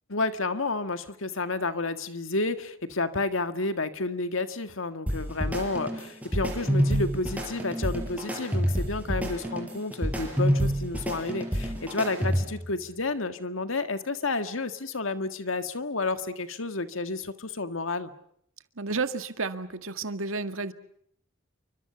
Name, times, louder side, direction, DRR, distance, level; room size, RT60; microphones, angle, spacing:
voice 1, 0.1-18.1, left 3 dB, 85° left, 9 dB, 1.8 m, -31 dB
sound 1, 5.1-12.7, equal, 5° right, 5.5 m, -28 dB
voice 2, 18.8-20.7, right 3 dB, 90° right, 9 dB, 1.8 m, -31 dB
28.5 x 24.5 x 6.9 m, 0.69 s
head